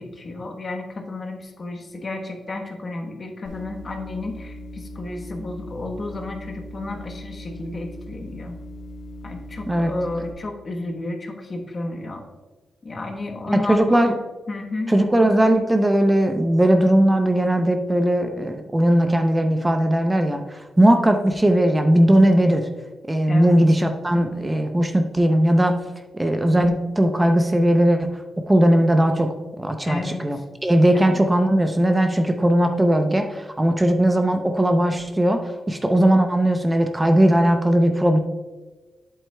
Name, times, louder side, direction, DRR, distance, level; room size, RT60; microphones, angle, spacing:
voice 1, 0.0-8.5 9.2-12.2 12.8-14.2 14.5-14.9 23.3-23.6 29.8-30.4 30.9-31.2, left 2 dB, 40° left, 3 dB, 1.1 m, -32 dB
sound 1, 3.4-10.3, left 1 dB, 80° left, 1.3 m, -38 dB
voice 2, 13.5-14.1 14.9-22.7 23.1-25.8 26.1-28.1 28.5-38.2, right 1 dB, 15° right, 5 dB, 0.6 m, -18 dB
7.9 x 7.7 x 2.2 m, 1.2 s
cardioid pair, 95°, 0 cm